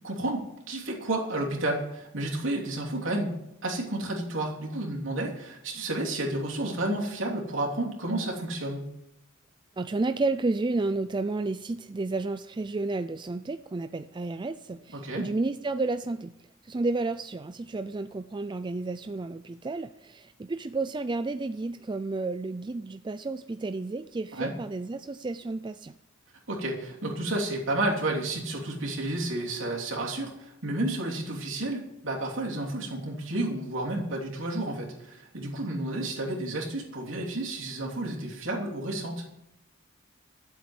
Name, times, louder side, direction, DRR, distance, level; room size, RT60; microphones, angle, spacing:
voice 1, 0.0-3.3 3.6-8.8 14.9-15.3 24.4-24.5 26.5-39.2, right 1 dB, 70° right, -1 dB, 3.2 m, -31 dB
voice 2, 9.8-16.3 16.6-25.9, right 3 dB, 25° right, 10 dB, 0.4 m, -31 dB
12.5 x 8.0 x 8.2 m, 0.84 s
head